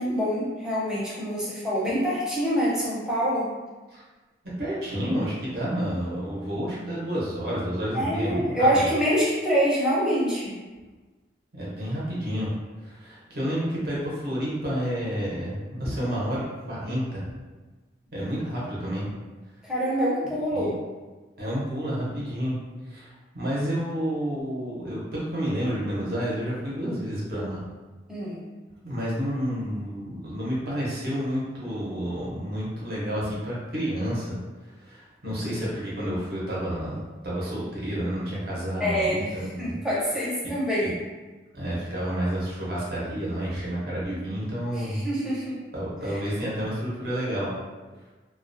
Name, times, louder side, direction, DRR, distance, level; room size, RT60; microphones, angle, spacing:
voice 1, 0.0-3.5 7.9-10.6 19.6-20.7 28.1-28.4 35.6-35.7 38.8-40.9 44.7-45.6 46.1-46.2, equal, 5° right, -8 dB, 0.6 m, -26 dB
voice 2, 4.6-8.7 11.5-12.5 12.8-17.2 18.1-19.0 20.5-20.7 21.4-22.6 22.9-23.1 23.3-27.6 28.8-34.4 34.6-39.8 40.8-40.9 41.5-45.0 45.7-47.5, equal, 55° right, -7 dB, 0.7 m, -30 dB
2.3 x 2.2 x 2.5 m, 1.3 s
head